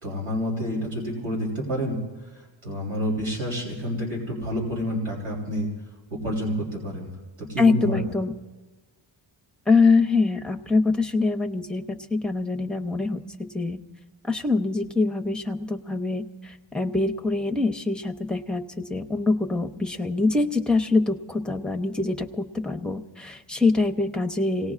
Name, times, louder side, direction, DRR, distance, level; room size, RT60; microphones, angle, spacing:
voice 1, 0.0-2.0 2.6-5.7 6.2-7.1 7.5-8.0, equal, 80° right, -3 dB, 3.5 m, -28 dB
voice 2, 7.6-8.3 9.7-13.8 14.3-24.7, left 3 dB, ahead, 2 dB, 0.5 m, -24 dB
28.0 x 18.0 x 2.4 m, 1.3 s
wide cardioid pair, 140°, 49 cm